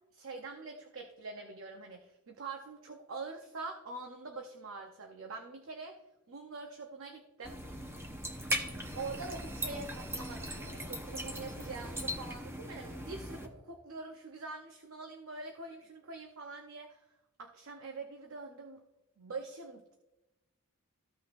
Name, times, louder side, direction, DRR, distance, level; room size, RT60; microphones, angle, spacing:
voice 1, 0.1-6.0 6.3-7.6 8.9-17.1 17.4-18.8 19.2-19.9, right 3 dB, 60° right, 3 dB, 0.8 m, -44 dB
sound 1, 7.4-13.5, equal, 10° right, 0.9 m, -39 dB
15.0 x 6.0 x 2.5 m, 1.0 s
head